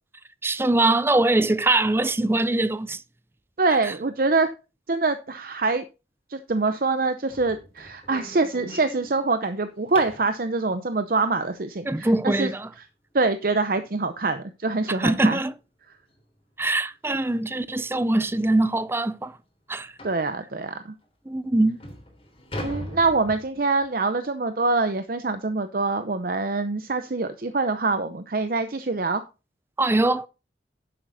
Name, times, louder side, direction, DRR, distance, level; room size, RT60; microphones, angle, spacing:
voice 1, 0.4-3.0 3.8-3.9 11.9-12.7 15.0-15.5 16.6-19.3 19.7-19.9 21.3-21.8 29.8-30.3, right 2 dB, 15° right, 0.4 m, -22 dB
voice 2, 3.6-4.5 4.9-5.8 6.3-12.5 13.1-15.4 20.0-20.9 22.6-29.2, right 3 dB, 50° right, 0.7 m, -25 dB
sound 1, 7.3-10.4 13.2-13.3 13.8-14.0 14.3-14.4 14.9-15.0 16.1-16.2 16.6-16.8 17.4-17.5 17.9-18.0 18.5-18.6 20.0-20.3 21.0-21.1 21.6-23.9, left 1 dB, 30° left, 3.2 m, -40 dB
11.0 x 7.7 x 4.1 m
head